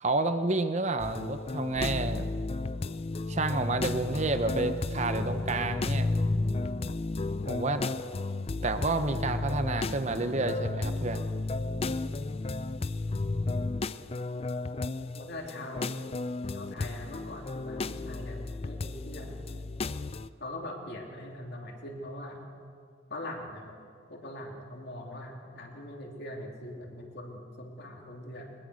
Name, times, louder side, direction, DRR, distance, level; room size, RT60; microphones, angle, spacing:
voice 1, 0.0-2.3 3.3-6.1 7.5-7.8 8.6-11.2, right 3 dB, 35° right, 9 dB, 0.8 m, -30 dB
sound 1, 1.0-20.3, left 2 dB, 30° left, 0.4 m, -33 dB
voice 2, 15.1-16.0 16.5-19.3 20.4-22.4 23.1-23.7 24.1-28.5, left 1 dB, 55° left, 1 dB, 3.3 m, -42 dB
21.5 x 21.0 x 6.3 m, 2.4 s
head